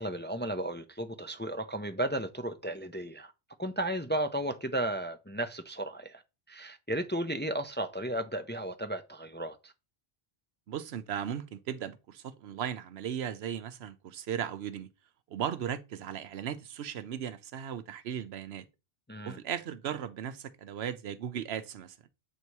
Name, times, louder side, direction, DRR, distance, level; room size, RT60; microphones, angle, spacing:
voice 1, 0.0-3.3 3.6-6.2 6.5-9.7 19.1-19.4, right 1 dB, 15° left, 0.4 m, -34 dB
voice 2, 10.7-14.9 15.3-18.7 19.2-22.0, right 9 dB, 85° right, 0.9 m, -37 dB
8.2 x 2.8 x 4.6 m
omnidirectional pair, 1.0 m